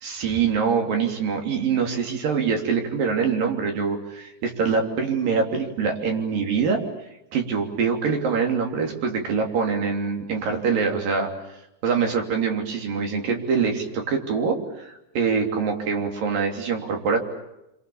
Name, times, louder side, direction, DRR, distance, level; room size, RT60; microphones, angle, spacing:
voice 1, 0.0-6.8 7.3-11.3 11.8-17.2, right 5 dB, 80° right, 2 dB, 5.0 m, -24 dB
27.5 x 26.0 x 7.2 m, 0.88 s
omnidirectional pair, 3.9 m